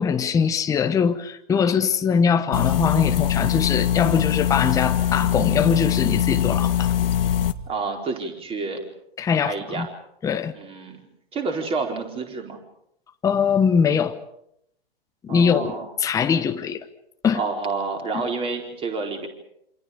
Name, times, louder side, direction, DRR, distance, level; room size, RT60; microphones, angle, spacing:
voice 1, 0.0-6.9 9.2-9.9 10.2-10.5 13.2-14.2 15.2-16.9 17.2-17.4 18.1-18.2, left 6 dB, 10° left, 1.1 m, -22 dB
sound 1, 2.5-7.5, left 10 dB, 65° left, 1.6 m, -22 dB
voice 2, 7.7-8.8 9.4-9.9 10.5-11.0 11.3-12.6 15.3-15.9 17.3-19.3, right 4 dB, 20° right, 4.5 m, -29 dB
27.5 x 27.0 x 5.2 m
hypercardioid pair, 130°, 31 cm